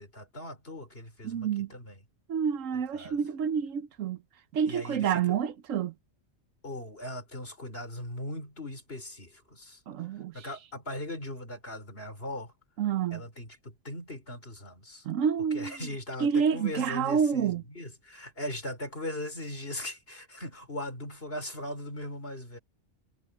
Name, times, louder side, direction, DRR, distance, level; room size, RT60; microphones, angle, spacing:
voice 1, 0.0-2.0 2.9-3.2 4.7-5.4 6.6-9.8 10.3-12.5 13.1-15.1 15.5-22.6, left 1 dB, 50° left, 5.3 m, -39 dB
voice 2, 1.2-1.7 2.3-4.2 4.5-5.9 9.9-10.5 12.8-13.2 15.0-15.8 16.2-17.6, right 7 dB, 80° right, 1.2 m, -28 dB
omnidirectional pair, 1.3 m